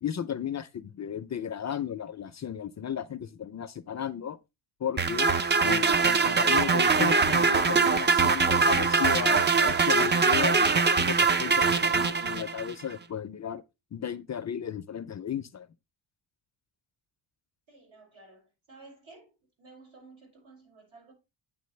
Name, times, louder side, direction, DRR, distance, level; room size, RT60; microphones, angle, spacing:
voice 1, 0.0-4.4 4.8-5.3 5.6-13.6 13.9-15.7, left 9 dB, 35° left, 0.4 m, -34 dB
sound 1, 5.0-12.7, right 4 dB, 25° right, 0.4 m, -23 dB
voice 2, 17.7-21.1, right 3 dB, 80° right, 6.4 m, -53 dB
9.3 x 7.2 x 3.2 m
wide cardioid pair, 130°, 48 cm